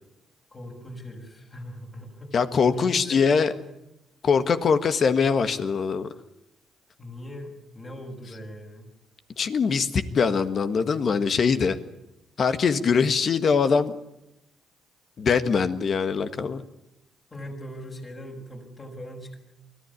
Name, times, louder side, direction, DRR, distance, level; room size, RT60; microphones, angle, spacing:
voice 1, 0.5-2.4 2.6-3.7 7.0-8.9 17.3-19.4, equal, 30° left, 3 dB, 6.6 m, -40 dB
voice 2, 2.3-3.5 4.2-6.1 9.4-11.8 12.4-13.9 15.2-16.6, left 5 dB, 50° left, 10 dB, 1.5 m, -22 dB
24.0 x 15.5 x 9.8 m, 0.89 s
cardioid pair, 90°, 0 cm